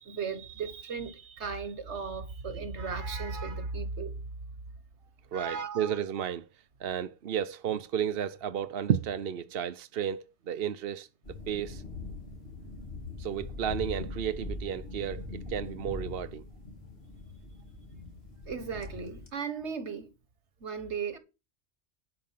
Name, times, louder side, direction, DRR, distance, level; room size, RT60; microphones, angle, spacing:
voice 1, 0.0-4.1 5.3-6.0 18.5-20.1 20.6-21.2, right 5 dB, 85° right, 1.7 m, -36 dB
voice 2, 5.3-6.5 6.8-11.1 11.5-11.8 13.2-16.4, right 9 dB, 60° right, 0.9 m, -32 dB
sound 1, 11.2-19.3, left 3 dB, 65° left, 3.0 m, -41 dB
11.0 x 5.3 x 7.5 m
omnidirectional pair, 1.1 m